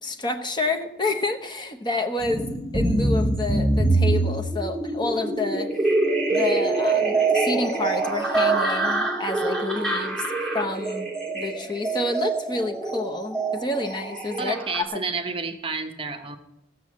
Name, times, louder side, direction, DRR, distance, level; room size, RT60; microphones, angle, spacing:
voice 1, 0.0-5.8 6.3-10.3 10.5-14.6 14.9-15.0, left 2 dB, 25° left, 4 dB, 0.9 m, -29 dB
sound 1, 2.2-14.8, right 2 dB, 5° left, 2.4 m, -24 dB
voice 2, 14.4-16.4, right 4 dB, 30° right, 8 dB, 0.8 m, -30 dB
16.0 x 6.2 x 7.4 m, 0.87 s
head